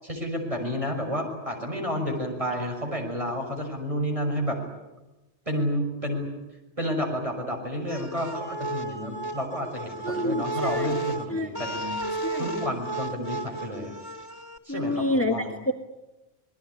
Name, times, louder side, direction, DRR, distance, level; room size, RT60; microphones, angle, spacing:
voice 1, 0.0-4.6 5.5-6.3 6.8-12.0 12.4-13.9 14.6-15.5, equal, 30° right, 2 dB, 6.4 m, -30 dB
sound 1, 7.9-14.6, right 1 dB, 60° left, 2.7 m, -33 dB
voice 2, 10.0-10.9 11.3-11.5 12.1-12.5 14.7-15.7, left 1 dB, 10° left, 4 dB, 1.6 m, -28 dB
27.0 x 20.5 x 9.9 m, 0.99 s
omnidirectional pair, 1.2 m